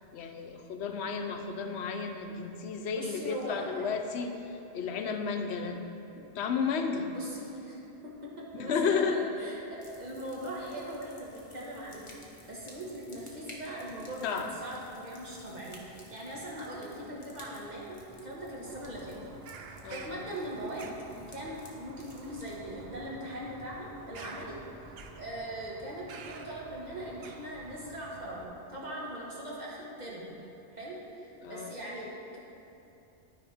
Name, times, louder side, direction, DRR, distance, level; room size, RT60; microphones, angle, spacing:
voice 1, 0.1-5.8 6.1-7.1 8.5-9.2 14.2-14.5 19.8-20.2 31.4-31.7, left 5 dB, 75° left, 5 dB, 0.9 m, -33 dB
voice 2, 2.9-3.9 7.1-19.2 19.9-24.6 25.2-30.3 30.7-32.4, right 1 dB, 40° right, -4 dB, 1.5 m, -40 dB
sound 1, 9.8-26.1, left 1 dB, 30° left, 1.1 m, -55 dB
Bird vocalization bird call bird song, 18.7-28.5, right 5 dB, 65° right, 0.8 m, -50 dB
12.5 x 5.2 x 3.5 m, 2.8 s
omnidirectional pair, 1.1 m